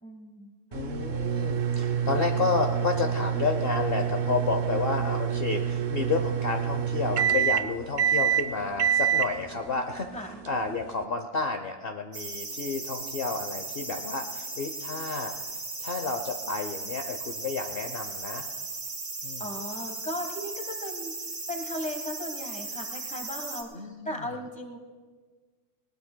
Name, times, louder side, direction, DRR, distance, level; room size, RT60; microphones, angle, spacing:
voice 1, 0.0-0.5 10.1-10.4 19.4-21.1 21.5-24.8, left 1 dB, 5° left, 5 dB, 1.1 m, -37 dB
voice 2, 0.7-10.1 10.5-15.3 15.8-18.5 19.2-19.4 23.7-24.2, left 4 dB, 50° left, 5 dB, 0.9 m, -31 dB
sound 1, 0.7-11.0, right 8 dB, 70° right, 0.4 m, -27 dB
sound 2, 12.1-23.6, right 3 dB, 50° right, 2.7 m, -37 dB
19.5 x 19.5 x 2.2 m, 1.5 s
omnidirectional pair, 1.4 m